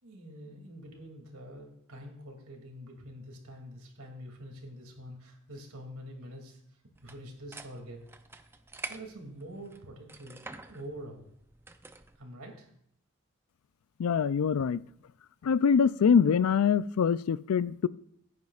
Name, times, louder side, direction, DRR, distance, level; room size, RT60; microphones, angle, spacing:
voice 1, 0.0-6.6 7.0-8.0 8.9-11.3 12.2-12.7, equal, 80° right, 2.7 m, -46 dB
sound 1, 6.9-12.2, right 3 dB, 10° right, 0.5 m, -47 dB
voice 2, 14.0-14.8 15.4-17.9, left 6 dB, 75° left, 0.4 m, -24 dB
15.5 x 9.5 x 2.4 m
head